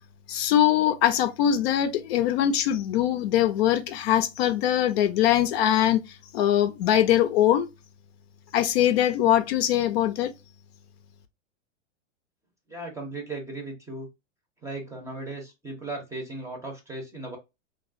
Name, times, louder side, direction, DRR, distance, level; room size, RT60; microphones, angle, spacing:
voice 1, 0.3-6.0 6.3-7.7 8.5-10.3, left 11 dB, 60° left, 0.5 m, -22 dB
voice 2, 12.7-14.1 14.6-17.4, right 2 dB, 10° right, 0.6 m, -36 dB
3.1 x 2.3 x 2.5 m
supercardioid pair, 140°, 36 cm